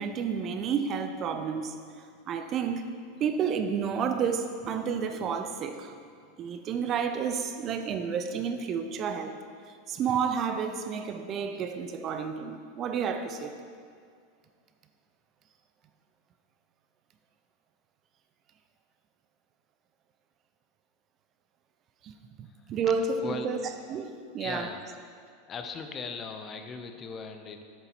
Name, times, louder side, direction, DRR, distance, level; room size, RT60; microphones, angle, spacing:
voice 1, 0.0-1.7 2.3-2.9 3.2-5.9 6.4-9.3 9.9-13.5 22.0-23.6 23.9-24.7, right 6 dB, 40° right, 7 dB, 0.6 m, -30 dB
voice 2, 24.4-24.8 25.5-27.6, left 4 dB, 30° left, 6 dB, 0.7 m, -38 dB
7.8 x 6.9 x 4.5 m, 2.1 s
hypercardioid pair, 95°, 0 cm